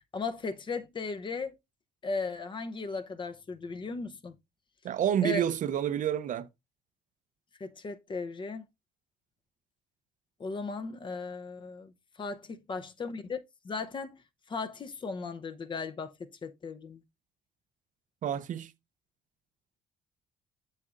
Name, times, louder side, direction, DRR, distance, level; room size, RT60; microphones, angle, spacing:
voice 1, 0.1-1.6 2.0-4.3 5.2-5.4 7.6-8.6 10.4-11.9 12.2-14.1 14.5-16.1 16.4-17.0, left 4 dB, 30° left, 0.7 m, -36 dB
voice 2, 4.8-6.5 18.2-18.7, right 10 dB, 50° right, 0.5 m, -29 dB
7.7 x 6.4 x 2.5 m
cardioid pair, 110°, 17 cm